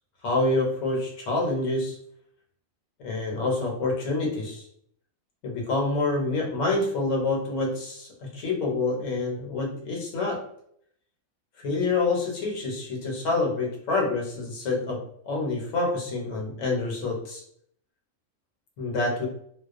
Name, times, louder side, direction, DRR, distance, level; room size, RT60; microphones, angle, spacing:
voice 1, 0.2-2.0 3.0-4.6 5.4-10.5 11.6-17.4 18.8-19.3, left 3 dB, 70° left, -1 dB, 1.1 m, -27 dB
2.3 x 2.3 x 2.4 m, 0.67 s
omnidirectional pair, 1.5 m